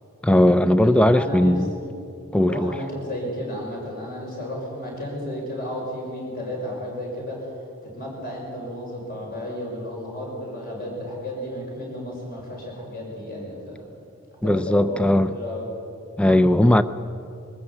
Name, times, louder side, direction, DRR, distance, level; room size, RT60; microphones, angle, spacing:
voice 1, 0.2-1.7 2.3-2.7 14.4-15.3 16.2-16.8, left 1 dB, 5° left, 11 dB, 0.5 m, -18 dB
voice 2, 0.8-1.9 2.4-7.5 7.8-13.8 14.4-15.7, left 1 dB, 40° left, -2 dB, 6.1 m, -33 dB
22.0 x 14.0 x 8.6 m, 2.6 s
head